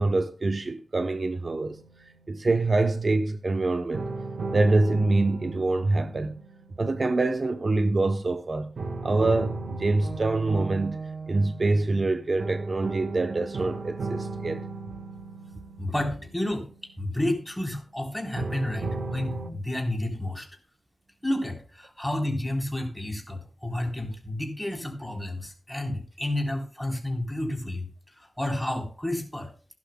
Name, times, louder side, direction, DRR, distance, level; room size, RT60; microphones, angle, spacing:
voice 1, 0.0-1.8 2.3-4.1 4.5-6.4 6.8-8.7 9.0-11.0 11.3-14.6, right 2 dB, 45° right, 0.7 m, -25 dB
sound 1, 1.3-2.5 3.9-7.9 8.8-17.6 18.4-19.5, right 3 dB, 75° right, 1.3 m, -36 dB
voice 2, 15.8-16.7 17.0-20.5 21.2-29.5, left 1 dB, 5° left, 3.6 m, -31 dB
16.5 x 11.5 x 2.2 m
wide cardioid pair, 80°, 0 cm